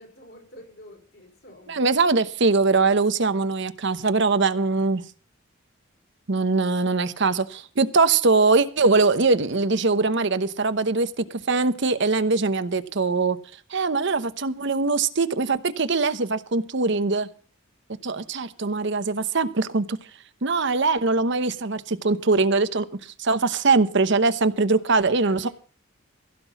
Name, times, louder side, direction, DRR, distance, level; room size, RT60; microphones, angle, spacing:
voice 1, 0.0-1.8 18.0-18.3 24.8-25.5, left 1 dB, 60° left, 5.3 m, -47 dB
voice 2, 1.7-5.0 6.3-13.4 13.7-17.3 18.0-20.0 20.4-25.5, right 3 dB, 65° right, 0.9 m, -22 dB
16.0 x 6.1 x 7.1 m
head